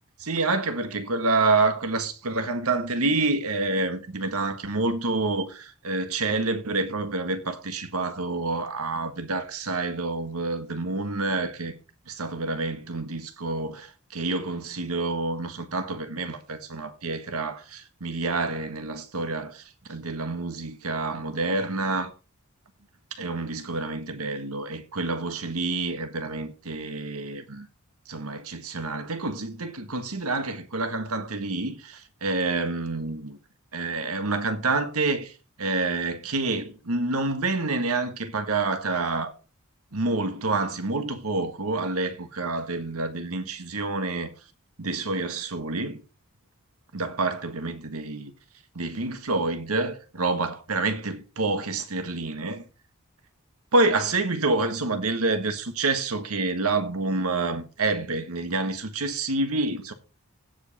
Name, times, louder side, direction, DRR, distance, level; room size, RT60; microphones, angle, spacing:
voice 1, 0.2-11.7 12.1-22.1 23.2-27.7 28.1-33.4 33.7-35.3 35.6-39.3 39.9-44.3 44.8-46.0 46.9-48.3 48.7-52.6 53.7-59.9, right 3 dB, 80° right, 1.6 m, -28 dB
16.0 x 5.4 x 4.1 m
head